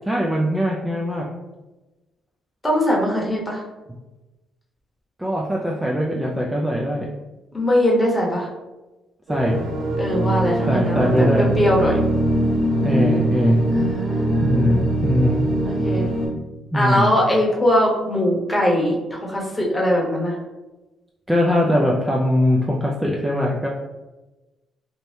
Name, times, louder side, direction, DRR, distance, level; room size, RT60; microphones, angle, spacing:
voice 1, 0.1-1.3 5.2-7.1 9.3-9.6 10.7-11.5 12.8-13.6 14.4-15.5 16.7-17.1 21.3-23.7, equal, 5° right, -2 dB, 0.3 m, -21 dB
voice 2, 2.6-3.6 7.5-8.5 10.0-12.0 13.7-14.9 15.6-16.1 16.7-20.4, equal, 15° left, -3 dB, 0.9 m, -21 dB
sound 1, 9.3-16.3, right 1 dB, 75° right, 1.2 m, -22 dB
2.7 x 2.1 x 3.3 m, 1.1 s
cardioid pair, 90°, 0 cm